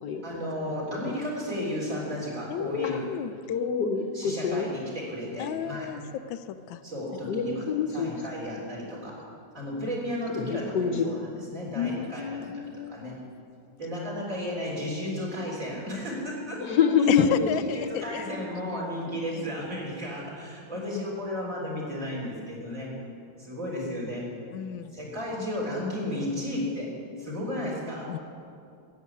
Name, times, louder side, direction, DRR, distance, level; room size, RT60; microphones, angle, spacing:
voice 1, 0.2-3.1 4.1-5.9 6.8-9.1 9.5-12.6 12.9-13.1 13.8-16.6 17.6-22.9 23.4-24.3 24.9-26.9 27.2-28.2, left 1 dB, 40° right, -4 dB, 4.4 m, -34 dB
voice 2, 2.5-3.3 5.4-6.0 6.3-6.8 11.7-13.1 17.1-18.3 18.7-19.2 20.7-21.0 24.5-24.9 28.1-28.2, left 9 dB, 80° left, 11 dB, 1.3 m, -32 dB
voice 3, 3.5-4.7 7.3-8.1 10.3-11.1 16.6-17.5 27.6-27.7, left 6 dB, 65° left, 4 dB, 1.5 m, -25 dB
14.0 x 8.2 x 9.7 m, 2.4 s
omnidirectional pair, 2.1 m